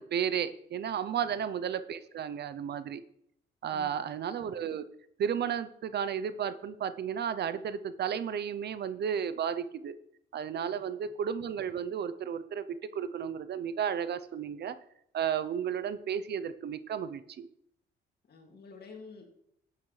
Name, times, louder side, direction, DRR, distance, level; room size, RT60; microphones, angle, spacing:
voice 1, 0.0-3.0 3.6-4.8 5.2-9.9 10.3-12.7 12.9-14.8 15.1-17.5, right 8 dB, 55° right, 14 dB, 0.6 m, -33 dB
voice 2, 3.6-4.2 10.6-11.1 18.3-19.3, left 4 dB, 55° left, 2 dB, 2.3 m, -51 dB
13.0 x 8.5 x 3.2 m, 0.72 s
cardioid pair, 90°, 20 cm